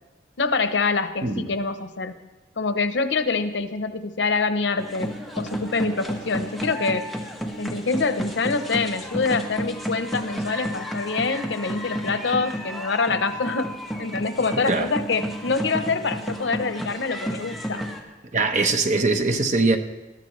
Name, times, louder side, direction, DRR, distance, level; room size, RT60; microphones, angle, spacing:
voice 1, 0.4-2.1 2.6-7.0 7.6-13.7 14.0-17.8, left 4 dB, 85° left, 10 dB, 0.8 m, -25 dB
armory park drumming, 4.8-18.0, equal, ahead, 1.4 m, -32 dB
voice 2, 18.3-19.8, right 3 dB, 40° right, 6 dB, 1.0 m, -21 dB
21.0 x 13.0 x 3.2 m, 1.1 s
head